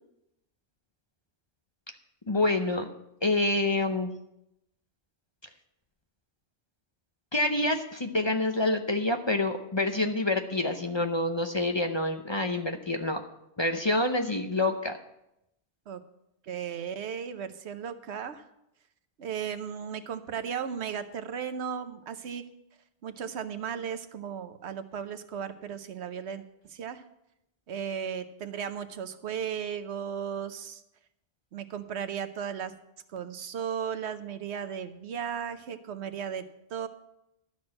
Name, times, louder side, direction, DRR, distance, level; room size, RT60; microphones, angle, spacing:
voice 1, 2.3-2.9 3.2-4.1 7.3-13.2 13.6-15.0, left 2 dB, 30° left, 5 dB, 0.7 m, -27 dB
voice 2, 16.4-18.4 19.2-22.4 23.0-27.0 27.7-30.8 31.5-32.7 33.1-36.4 36.7-36.9, right 7 dB, 80° right, 10 dB, 1.1 m, -35 dB
12.0 x 6.2 x 7.5 m, 0.85 s
omnidirectional pair, 1.1 m